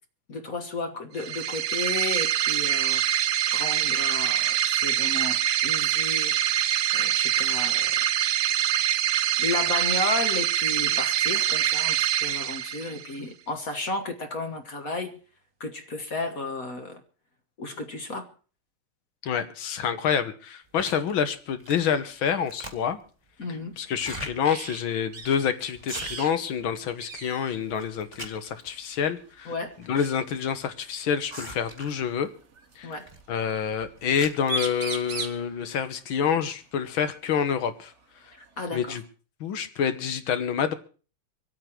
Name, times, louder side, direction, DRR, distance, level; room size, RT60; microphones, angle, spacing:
voice 1, 0.3-3.0 3.5-8.0 9.4-15.2 15.6-17.0 17.6-18.3 23.4-23.8 29.4-29.8 32.8-33.1 38.3-39.0, left 3 dB, 45° left, 1.6 m, -33 dB
sound 1, 1.2-13.1, right 11 dB, 90° right, 1.9 m, -24 dB
voice 2, 19.2-23.0 23.8-29.5 29.9-32.3 32.8-32.9 33.3-37.9 38.7-39.0 39.4-40.7, left 7 dB, 65° left, 1.9 m, -27 dB
sound 2, 20.8-21.1 21.6-22.0 22.3-23.1 23.9-24.3 24.8-24.9 25.2-25.4 25.7-26.4 26.8-27.3 27.7-28.7 29.5-30.1 30.4-30.5 31.3-32.1 32.9-33.2 33.7-34.5, right 1 dB, 15° right, 1.7 m, -41 dB
sound 3, 24.4-24.8 25.1-25.4 25.9-26.3 26.6-26.7 27.0-27.6 28.8-29.0 30.7-30.8 31.9-32.7 34.1-34.2 34.4-35.4 37.4-37.5 37.9-38.9, right 4 dB, 40° right, 1.3 m, -36 dB
25.5 x 8.7 x 4.5 m
omnidirectional pair, 2.4 m